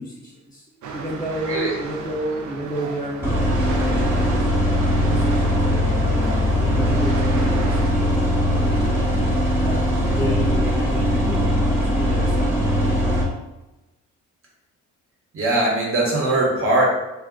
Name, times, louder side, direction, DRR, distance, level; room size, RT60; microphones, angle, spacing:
voice 1, 0.0-4.5 4.9-9.0 9.6-12.6, equal, 15° left, -8 dB, 0.6 m, -32 dB
sound 1, 0.8-7.9, right 5 dB, 70° right, 0.5 m, -34 dB
sound 2, 3.2-13.2, equal, 5° right, 1.0 m, -20 dB
voice 2, 15.3-16.8, right 2 dB, 45° right, -3 dB, 1.2 m, -20 dB
2.5 x 2.3 x 3.7 m, 1.0 s
cardioid pair, 90°, 30 cm